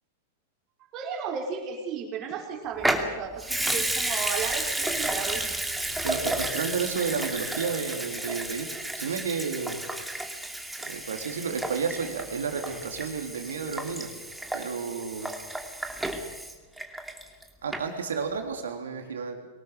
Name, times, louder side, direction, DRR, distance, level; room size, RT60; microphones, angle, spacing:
voice 1, 0.9-5.6, right 6 dB, 40° right, 1 dB, 5.4 m, -34 dB
Water tap faucet / Sink (filling or washing) / Liquid, 2.8-17.4 17.7-17.8, right 1 dB, 5° right, 2.5 m, -32 dB
voice 2, 6.0-9.8 10.8-14.1 14.5-15.3 17.6-19.4, right 5 dB, 70° right, 5 dB, 3.5 m, -31 dB
24.0 x 18.5 x 7.0 m, 1.3 s
figure-of-eight pair, 95°, 0 cm